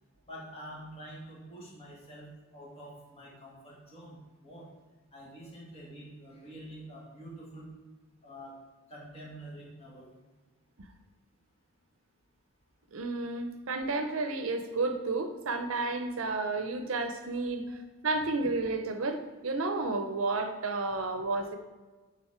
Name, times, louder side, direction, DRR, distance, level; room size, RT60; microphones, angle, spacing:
voice 1, 0.2-2.3 2.5-4.7 5.1-7.7 8.2-8.5 8.9-10.1 17.6-17.9, right 1 dB, 30° left, -4 dB, 2.2 m, -47 dB
voice 2, 12.9-17.8 18.0-21.5, right 3 dB, 65° right, 7 dB, 0.7 m, -31 dB
9.0 x 4.0 x 4.4 m, 1.3 s
head